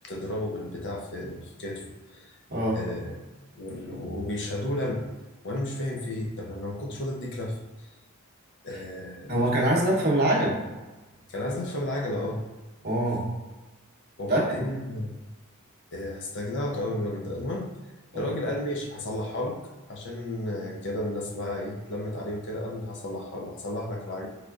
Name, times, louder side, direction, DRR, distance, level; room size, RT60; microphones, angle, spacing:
voice 1, 0.0-2.4 2.7-3.2 3.6-5.1 5.4-7.9 8.6-9.3 11.3-12.4 14.2-15.2 15.9-17.7 18.1-19.6 19.9-24.3, left 1 dB, 55° left, 0 dB, 0.5 m, -32 dB
voice 2, 9.3-10.6 12.8-13.3 14.3-14.5 18.1-18.2, right 1 dB, 45° right, -3 dB, 0.8 m, -24 dB
3.7 x 3.2 x 2.3 m, 1.2 s
head